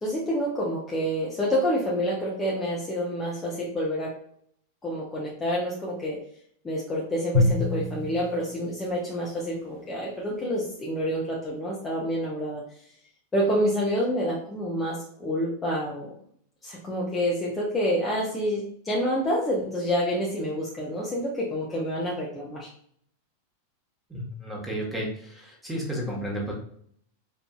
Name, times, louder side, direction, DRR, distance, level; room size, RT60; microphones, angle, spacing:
voice 1, 0.0-4.1 4.8-6.2 6.6-12.6 13.3-16.1 16.6-22.7, equal, 15° left, -5 dB, 0.7 m, -28 dB
Drum, 7.3-9.7, left 2 dB, 60° right, 1.3 m, -27 dB
voice 2, 24.1-26.5, equal, 5° right, -3 dB, 1.2 m, -32 dB
4.5 x 2.6 x 2.3 m, 0.64 s
figure-of-eight pair, 90°, 0 cm